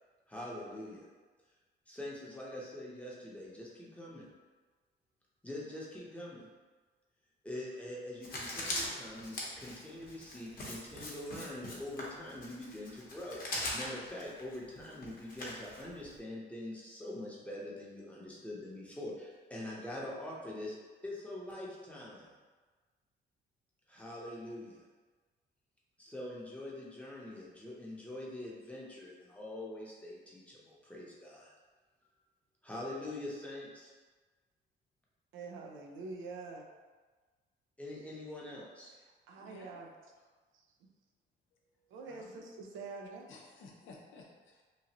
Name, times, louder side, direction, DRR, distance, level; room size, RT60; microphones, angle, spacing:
voice 1, 0.3-1.1 1.9-4.3 5.4-6.4 7.4-20.8 21.0-22.3 23.9-24.8 26.0-31.5 32.6-33.9 37.8-38.9, left 1 dB, 5° left, -5 dB, 0.8 m, -44 dB
Writing, 8.2-16.2, left 1 dB, 45° left, 0.9 m, -41 dB
voice 2, 35.3-36.7 39.3-39.9 40.5-40.7 41.9-43.3, right 4 dB, 80° right, 2 dB, 0.5 m, -45 dB
voice 3, 39.4-39.8 41.6-42.4 43.3-44.6, left 4 dB, 80° left, -1 dB, 0.6 m, -55 dB
3.0 x 2.5 x 2.8 m, 1.4 s
cardioid pair, 90°, 20 cm